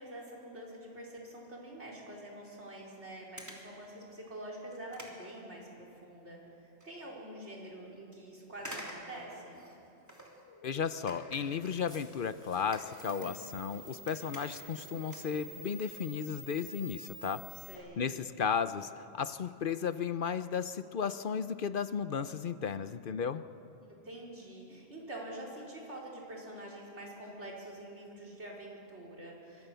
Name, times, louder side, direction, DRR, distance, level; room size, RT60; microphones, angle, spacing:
voice 1, 0.0-9.6 17.5-18.2 23.9-29.7, right 1 dB, 90° right, -2 dB, 5.0 m, -46 dB
sound 1, 2.8-2.9 3.4-3.8 4.2-4.3 4.7-6.1 6.4-6.9 7.3-7.4 8.6-10.5 11.1-13.7 13.9-14.8 15.0-16.0 16.3-16.5 17.2-17.3 17.6-17.7 17.9-18.0 18.3-18.5 18.9-19.1 19.3-19.4, equal, 15° right, 3.2 m, -50 dB
sound 2, 10.5-19.8, left 4 dB, 70° left, 2.1 m, -57 dB
voice 2, 10.6-17.4 18.0-23.4, left 7 dB, 55° left, 12 dB, 0.8 m, -34 dB
sound 3, 11.4-17.7, right 1 dB, 30° right, 4.6 m, -50 dB
25.0 x 23.5 x 6.9 m, 2.8 s
omnidirectional pair, 1.1 m